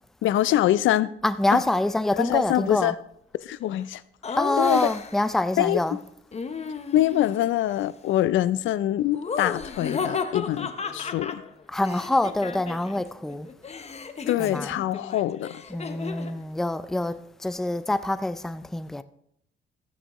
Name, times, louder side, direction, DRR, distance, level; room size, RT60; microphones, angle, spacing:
voice 1, 0.2-1.1 1.5-1.6 2.2-2.9 3.4-4.0 4.3-4.9 5.6-6.0 6.9-11.4 14.3-15.6, left 13 dB, 75° left, 0.5 m, -24 dB
voice 2, 1.2-3.0 4.4-6.0 11.7-13.5 14.4-14.8 15.7-19.0, left 2 dB, ahead, 0.4 m, -26 dB
Laughter, 4.2-5.3 6.3-7.3 9.1-13.0 13.3-16.4, left 5 dB, 35° left, 0.9 m, -34 dB
14.5 x 10.0 x 3.1 m
cardioid pair, 90°, 20 cm